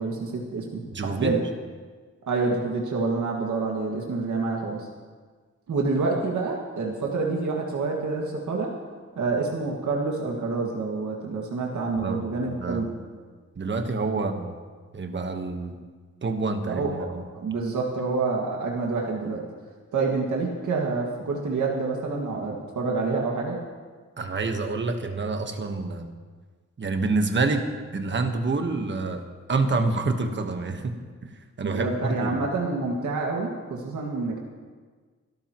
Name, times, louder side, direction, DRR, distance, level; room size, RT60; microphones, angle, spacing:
voice 1, 0.0-1.4 2.3-4.9 5.7-8.7 9.2-12.9 16.7-19.4 19.9-23.6 31.6-34.4, right 3 dB, 85° right, -2 dB, 2.0 m, -27 dB
voice 2, 0.9-1.3 12.0-12.2 12.5-12.9 13.6-14.5 14.9-15.7 16.2-17.2 24.2-26.1 26.8-27.6 27.9-29.2 29.5-30.9 31.2-31.3 31.6-32.3, right 3 dB, 40° right, 6 dB, 1.3 m, -27 dB
26.0 x 13.0 x 3.0 m, 1.5 s
wide cardioid pair, 140°, 29 cm